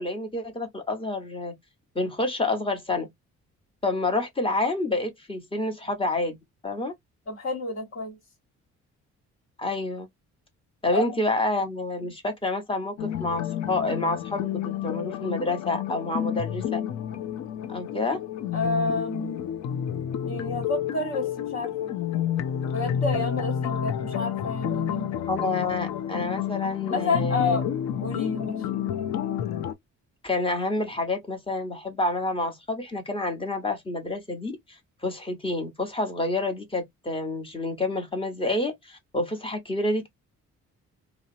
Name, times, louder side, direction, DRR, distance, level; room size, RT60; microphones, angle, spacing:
voice 1, 0.0-1.5 1.9-3.1 3.8-6.4 6.6-6.9 9.6-10.1 10.8-14.5 14.8-16.8 17.7-18.2 25.3-27.6 30.2-34.8 35.0-40.1, left 2 dB, 15° left, 1.0 m, -28 dB
voice 2, 7.3-8.2 10.9-11.2 12.0-12.1 18.5-19.4 20.2-21.9 22.7-25.1 26.9-27.6 28.0-28.6, left 3 dB, 50° left, 1.3 m, -29 dB
sound 1, 13.0-29.7, left 9 dB, 65° left, 0.5 m, -30 dB
2.7 x 2.0 x 2.6 m
cardioid pair, 90°, 30 cm